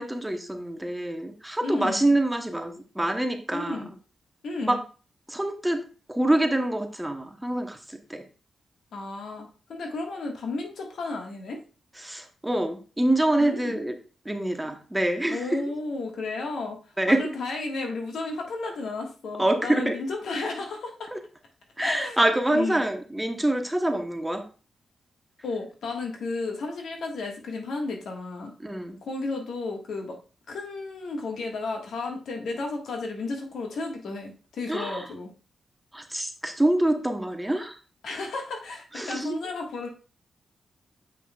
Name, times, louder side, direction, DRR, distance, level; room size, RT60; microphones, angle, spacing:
voice 1, 0.0-3.9 4.6-4.8 5.3-5.8 6.1-8.2 12.0-13.9 14.2-15.6 17.0-17.3 19.4-19.9 21.1-21.2 21.8-24.4 28.6-29.0 34.7-35.0 35.9-37.8 38.9-39.4, right 1 dB, 10° right, 5 dB, 1.0 m, -26 dB
voice 2, 1.6-2.1 3.5-3.9 4.4-4.8 8.9-11.6 13.4-13.8 15.3-16.8 17.1-21.1 21.8-22.2 22.5-22.9 25.4-28.5 29.0-30.2 30.5-35.3 38.0-39.9, left 3 dB, 80° left, 2 dB, 1.5 m, -33 dB
7.4 x 5.5 x 2.3 m, 0.36 s
cardioid pair, 70°, 0 cm